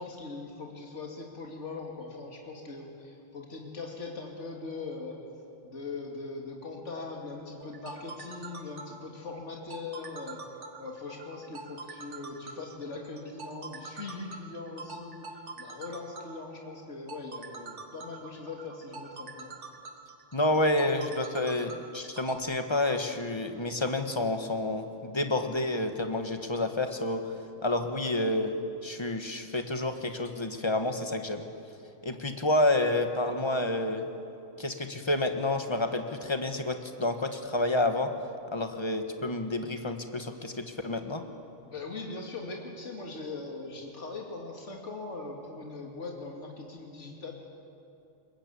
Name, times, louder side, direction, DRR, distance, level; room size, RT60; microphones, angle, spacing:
voice 1, 0.0-5.2 5.6-10.4 10.8-19.6 41.6-47.3, left 3 dB, 70° left, 1 dB, 2.9 m, -41 dB
sound 1, 7.6-22.4, right 3 dB, 65° right, 1.7 m, -44 dB
voice 2, 20.3-27.3 27.6-31.4 32.0-34.1 34.6-38.1 38.5-41.2, left 2 dB, 20° left, 6 dB, 1.5 m, -29 dB
22.0 x 21.0 x 8.5 m, 2.6 s
omnidirectional pair, 1.3 m